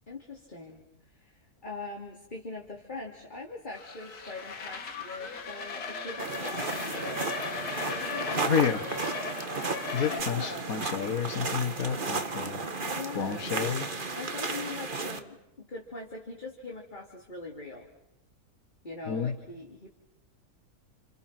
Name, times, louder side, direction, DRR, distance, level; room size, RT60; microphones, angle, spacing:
voice 1, 0.1-7.4 7.9-8.6 10.1-10.7 12.8-13.5 14.1-17.9 18.8-19.9, left 3 dB, 30° left, 3.2 m, -42 dB
sound 1, 3.7-10.2, left 4 dB, 85° left, 2.2 m, -37 dB
sound 2, 6.2-15.2, right 3 dB, 35° right, 1.7 m, -34 dB
voice 2, 8.5-8.8 9.9-12.6 13.2-13.9 19.1-19.4, left 7 dB, 70° left, 1.8 m, -29 dB
30.0 x 29.5 x 6.0 m
omnidirectional pair, 1.6 m